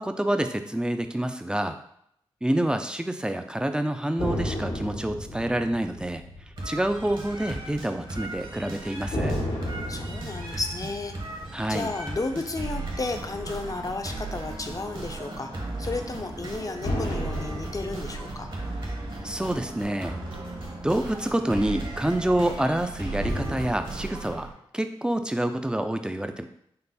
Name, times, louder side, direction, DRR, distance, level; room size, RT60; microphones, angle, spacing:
voice 1, 0.0-1.8 2.4-6.2 6.7-9.3 11.5-11.9 19.2-20.2 20.8-24.5 24.7-26.5, right 1 dB, 10° right, 7 dB, 0.5 m, -27 dB
sound 1, 4.2-8.3 9.1-13.7 16.8-20.4 23.2-23.7, left 1 dB, 90° left, 1.4 m, -34 dB
sound 2, 6.6-24.5, right 2 dB, 50° right, 1.4 m, -36 dB
voice 2, 9.9-11.3 11.7-18.5, left 3 dB, 35° left, 5 dB, 0.6 m, -33 dB
5.6 x 2.0 x 4.0 m, 0.72 s
cardioid pair, 40°, 10 cm